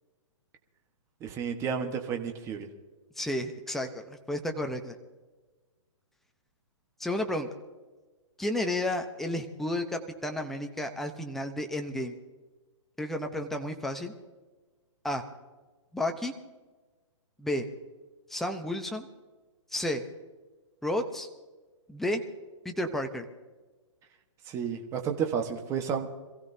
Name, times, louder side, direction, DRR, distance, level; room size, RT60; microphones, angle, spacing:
voice 1, 1.2-2.7 24.5-26.1, right 7 dB, 15° right, 3 dB, 1.3 m, -31 dB
voice 2, 3.2-5.0 7.0-7.5 8.4-12.1 13.0-14.1 15.0-15.2 15.9-16.3 17.4-17.7 18.3-19.1 19.7-20.0 20.8-21.3 21.9-22.2 22.6-23.3, left 1 dB, ahead, 4 dB, 0.8 m, -32 dB
26.5 x 15.5 x 2.7 m, 1.3 s
hypercardioid pair, 155°, 17 cm